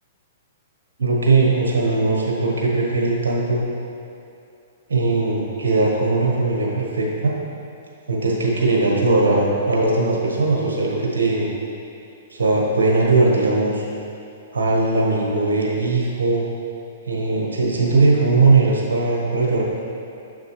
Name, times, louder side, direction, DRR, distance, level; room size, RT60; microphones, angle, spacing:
voice 1, 1.0-3.6 4.9-7.3 8.1-11.5 12.3-13.8 14.5-16.4 17.1-19.6, right 3 dB, 80° right, -2 dB, 1.2 m, -19 dB
6.6 x 6.3 x 3.1 m, 2.6 s
hypercardioid pair, 125°, 0 cm